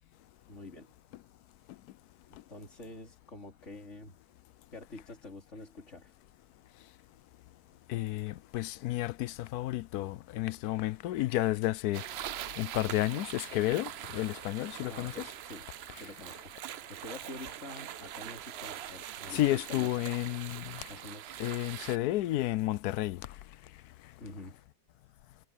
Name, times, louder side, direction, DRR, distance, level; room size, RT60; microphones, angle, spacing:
voice 1, 0.5-0.9 2.3-4.1 4.7-6.2 14.9-15.7 15.9-16.5 16.9-20.0 20.9-21.4 24.2-24.6, left 2 dB, 45° left, 4.0 m, -47 dB
voice 2, 7.9-12.0 12.6-15.3 19.3-20.9 21.4-23.2, left 16 dB, 75° left, 1.0 m, -31 dB
sound 1, 11.9-22.0, right 12 dB, 85° right, 0.5 m, -43 dB
omnidirectional pair, 1.7 m